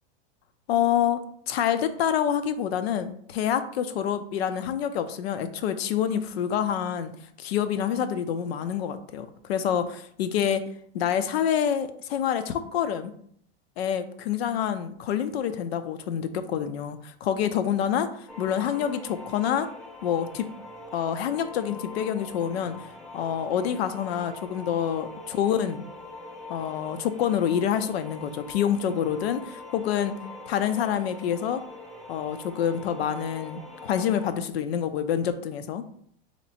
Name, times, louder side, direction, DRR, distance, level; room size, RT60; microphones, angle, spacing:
voice 1, 0.7-1.2 1.5-7.1 7.4-10.6 10.9-13.1 13.8-19.7 20.0-20.5 20.9-22.7 23.1-25.8 26.5-30.1 30.5-31.6 32.1-35.8, left 9 dB, 75° left, 10 dB, 0.6 m, -27 dB
sound 1, 18.3-34.3, left 2 dB, ahead, 0.3 m, -43 dB
3.2 x 3.0 x 4.1 m, 0.65 s
supercardioid pair, 135°, 31 cm